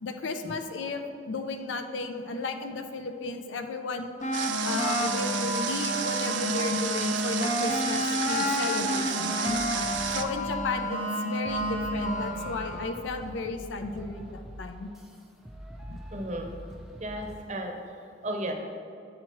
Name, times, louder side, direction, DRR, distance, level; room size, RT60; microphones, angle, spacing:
voice 1, 0.0-4.1 4.6-9.6 10.1-14.9 15.9-16.0, left 3 dB, 85° left, 6 dB, 0.5 m, -34 dB
sound 1, 4.2-13.0, equal, 40° left, 0.6 m, -30 dB
Water, 4.3-10.2, right 8 dB, 75° right, 0.4 m, -32 dB
sound 2, 9.5-10.8 11.5-17.4, equal, ahead, 0.4 m, -44 dB
voice 2, 16.1-16.5 17.0-17.7 18.2-18.5, right 1 dB, 40° right, 3 dB, 0.7 m, -33 dB
7.5 x 5.9 x 3.0 m, 2.5 s
head